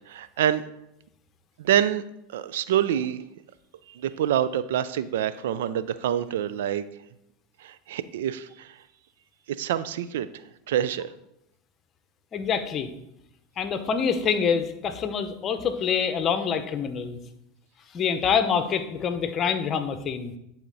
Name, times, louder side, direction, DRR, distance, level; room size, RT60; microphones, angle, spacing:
voice 1, 0.1-0.6 1.6-2.0 2.3-3.2 3.9-6.8 7.6-8.8 9.6-10.3 10.7-11.1, right 10 dB, 75° right, 14 dB, 0.4 m, -26 dB
voice 2, 12.3-12.9 13.6-17.2 17.9-20.3, left 6 dB, 35° left, 9 dB, 0.8 m, -26 dB
10.0 x 4.3 x 4.0 m, 0.82 s
hypercardioid pair, 100°, 0 cm